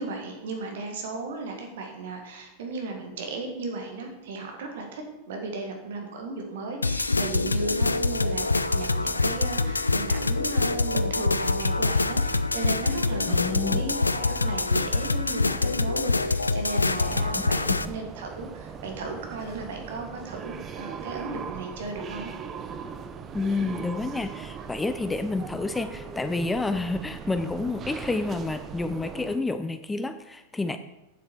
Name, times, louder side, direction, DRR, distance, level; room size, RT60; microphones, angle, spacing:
voice 1, 0.0-8.5 8.7-22.3, right 3 dB, 55° right, 3 dB, 1.7 m, -36 dB
sound 1, 6.8-17.9, left 3 dB, 80° left, 0.3 m, -25 dB
voice 2, 13.3-13.9 17.8-17.9 23.3-30.8, left 3 dB, 10° left, 10 dB, 0.4 m, -29 dB
sound 2, 17.0-29.4, right 6 dB, 25° right, 0.6 m, -40 dB
8.2 x 7.2 x 4.4 m, 0.97 s
figure-of-eight pair, 90°, 0 cm